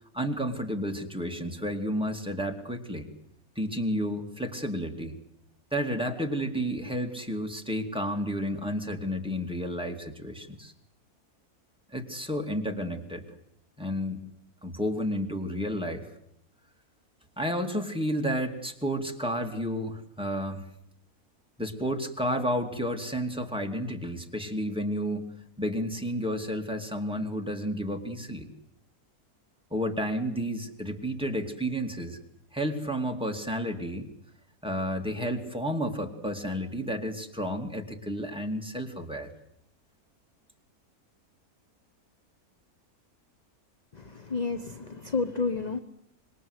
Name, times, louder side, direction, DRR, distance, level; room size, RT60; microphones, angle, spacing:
voice 1, 0.1-3.1 3.6-5.1 5.7-10.7 11.9-13.2 13.8-14.2 14.6-16.1 17.4-20.6 21.6-28.5 29.7-32.2 32.5-34.1 34.6-39.3, equal, 5° right, 3 dB, 2.5 m, -31 dB
voice 2, 43.9-45.8, left 4 dB, 30° left, 10 dB, 1.1 m, -30 dB
26.5 x 22.0 x 8.2 m, 0.76 s
omnidirectional pair, 1.6 m